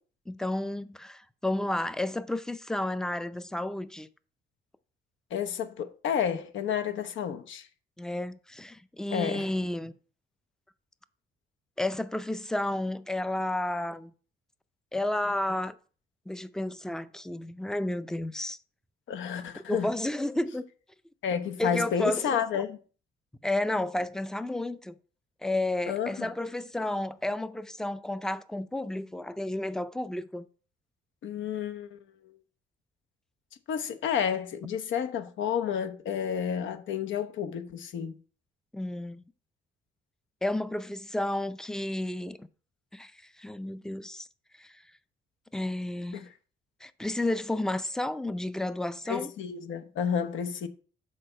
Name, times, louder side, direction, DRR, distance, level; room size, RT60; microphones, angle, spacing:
voice 1, 0.3-4.1 8.0-9.9 11.8-14.1 14.9-15.7 16.3-18.6 19.7-20.6 21.6-22.6 23.4-25.0 25.4-30.5 38.7-39.2 40.4-42.5 42.9-43.1 43.4-44.3 44.6-44.8 45.5-46.2 46.8-49.3, left 1 dB, 5° left, 0.4 m, -31 dB
voice 2, 5.3-7.7 9.1-9.5 19.1-19.9 21.2-22.8 25.9-26.3 31.2-32.0 32.2-32.3 33.7-38.2 46.1-46.3 49.1-50.7, left 8 dB, 75° left, 0.8 m, -31 dB
6.6 x 4.0 x 5.4 m
cardioid pair, 90°, 20 cm